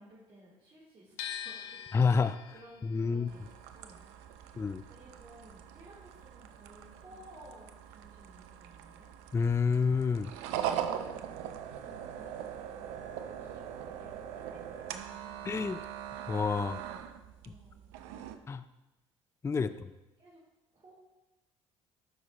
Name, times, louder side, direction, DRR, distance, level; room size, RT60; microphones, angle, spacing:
voice 1, 0.0-2.3 2.5-3.4 3.7-4.0 4.4-9.1 10.7-15.5 17.4-17.8 19.6-19.8 20.2-20.4 20.7-20.9, right 1 dB, 35° right, -9 dB, 3.4 m, -57 dB
sound 1, 1.2-7.2 7.5-8.8, left 9 dB, 70° left, 0.6 m, -46 dB
voice 2, 1.9-2.4 2.8-3.3 4.6-4.8 9.3-10.3 15.5-15.8 16.3-16.8 18.5-18.6 19.4-19.7, left 5 dB, 20° left, 13 dB, 0.4 m, -28 dB
sound 2, 3.3-18.4, right 9 dB, 75° right, 0.6 m, -41 dB
12.5 x 6.3 x 3.0 m, 1.0 s
hypercardioid pair, 60°, 15 cm